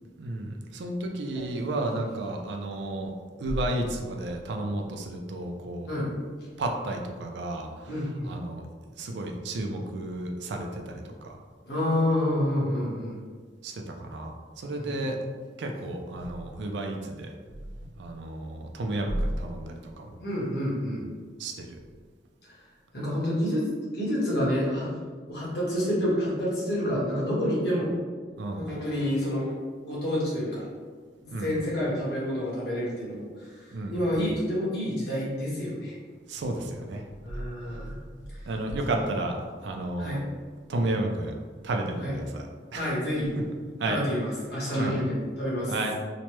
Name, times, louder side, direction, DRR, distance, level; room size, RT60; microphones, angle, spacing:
voice 1, 0.2-3.1 3.4-5.9 6.6-8.6 9.0-11.4 13.6-15.2 15.6-17.3 17.8-20.1 21.4-21.8 28.4-28.7 31.3-31.6 33.7-34.3 36.3-37.0 37.7-38.0 38.5-40.2 40.7-41.3 41.6-42.9 43.8-44.0 44.8-45.0 45.7-45.9, right 2 dB, 80° right, 3 dB, 0.4 m, -32 dB
voice 2, 1.3-1.7 5.9-6.1 7.9-8.3 11.7-13.1 14.8-15.0 20.2-21.0 22.9-23.7 23.9-24.9 25.3-27.9 28.6-29.5 29.8-30.6 31.2-33.2 33.9-35.9 37.2-37.9 40.0-40.2 42.0-42.1 42.8-43.3 43.8-45.7, equal, 70° left, -6 dB, 1.1 m, -28 dB
3.0 x 2.1 x 3.0 m, 1.6 s
head